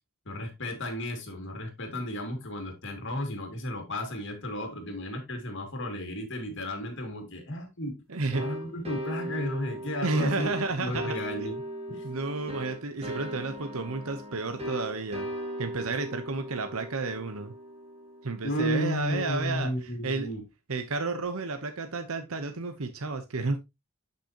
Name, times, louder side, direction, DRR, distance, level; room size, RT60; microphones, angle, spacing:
voice 1, 0.3-8.0 8.4-10.5 10.8-11.6 11.9-12.0 18.4-20.4, equal, 55° left, 2.4 m, -33 dB
voice 2, 8.1-8.4 10.0-11.5 12.0-15.3 15.6-17.5 18.2-19.7 20.0-20.3 20.7-23.6, right 3 dB, 70° right, 1.0 m, -31 dB
sound 1, 8.3-18.8, equal, 25° right, 1.8 m, -38 dB
10.0 x 5.8 x 2.9 m
head